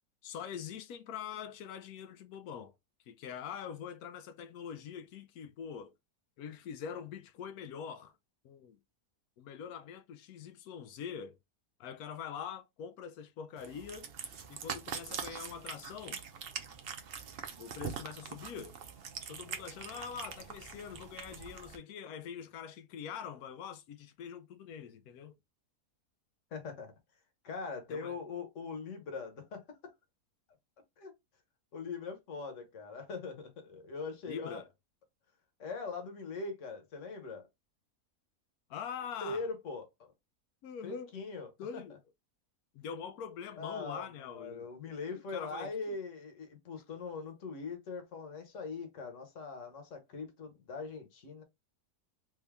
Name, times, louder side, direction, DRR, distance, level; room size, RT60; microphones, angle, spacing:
voice 1, 0.2-2.7 3.1-5.9 6.4-8.2 8.4-8.8 9.4-11.4 11.8-14.1 14.5-16.2 17.6-18.8 19.3-25.3 27.9-28.2 34.3-34.7 38.7-39.4 40.6-41.1 41.6-42.0 42.7-44.7 45.3-45.7, left 7 dB, 75° left, 1.0 m, -44 dB
Cat, 13.6-21.8, right 7 dB, 65° right, 0.6 m, -43 dB
voice 2, 26.5-26.9 27.4-29.9 31.0-31.1 31.7-34.6 35.6-37.5 39.2-40.1 40.8-41.8 43.6-51.4, left 4 dB, 55° left, 1.3 m, -41 dB
3.5 x 2.6 x 3.3 m
omnidirectional pair, 1.7 m